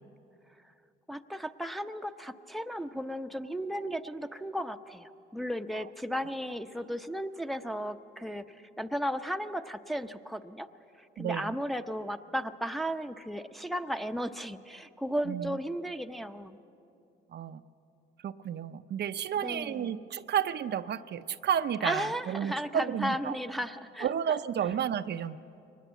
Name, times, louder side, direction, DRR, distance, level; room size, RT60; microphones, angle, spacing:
voice 1, 1.1-10.7 11.0-16.6 19.4-20.0 21.8-24.1, equal, ahead, 6 dB, 0.8 m, -35 dB
voice 2, 11.2-11.6 15.3-15.6 17.3-17.6 18.2-23.4 24.0-25.4, right 9 dB, 60° right, 10 dB, 0.6 m, -32 dB
23.0 x 20.0 x 8.2 m, 2.6 s
cardioid pair, 90°, 20 cm